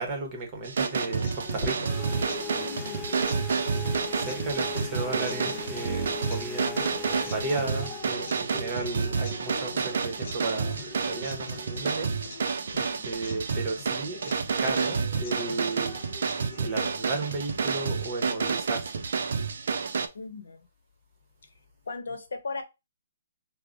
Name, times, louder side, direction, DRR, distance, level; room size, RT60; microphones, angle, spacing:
voice 1, 0.0-1.9 4.1-6.9 7.3-12.2 13.0-16.0 16.6-19.0, right 3 dB, 25° right, 0.9 m, -34 dB
sound 1, 0.6-20.1, right 5 dB, 65° right, 0.5 m, -29 dB
sound 2, 0.8-16.8, left 3 dB, 45° left, 0.9 m, -44 dB
sound 3, 1.9-8.0, left 7 dB, 10° left, 0.4 m, -39 dB
voice 2, 2.4-3.2 3.4-3.5 20.1-20.7 21.9-22.6, left 4 dB, 80° left, 0.7 m, -38 dB
4.6 x 2.1 x 2.5 m
hypercardioid pair, 160°, 0 cm